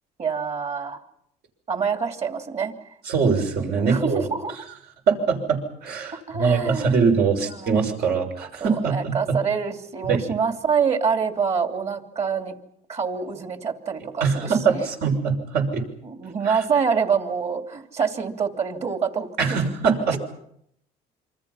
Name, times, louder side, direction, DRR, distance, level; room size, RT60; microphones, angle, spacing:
voice 1, 0.2-1.0 1.7-2.7 3.8-4.6 6.3-7.0 7.4-7.9 8.6-12.5 12.9-14.9 16.0-19.7, right 6 dB, 40° right, 6 dB, 3.0 m, -26 dB
voice 2, 3.1-4.2 5.1-9.4 10.1-10.2 14.2-15.8 16.4-16.6 19.4-20.2, right 5 dB, 70° right, 2 dB, 6.4 m, -22 dB
27.5 x 25.5 x 5.8 m, 0.73 s
cardioid pair, 110°, 17 cm